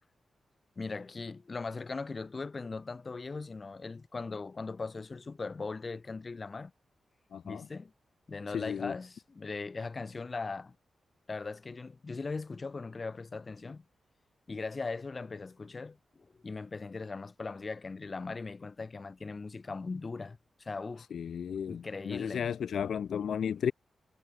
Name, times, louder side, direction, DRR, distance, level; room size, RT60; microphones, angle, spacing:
voice 1, 0.8-6.7 7.4-7.9 8.3-10.8 11.3-13.9 14.5-21.1 21.7-22.5, left 4 dB, 35° left, 2.0 m, -39 dB
voice 2, 7.3-7.6 8.5-9.0 21.1-23.7, left 8 dB, 80° left, 0.4 m, -34 dB
cardioid pair, 100°, 0 cm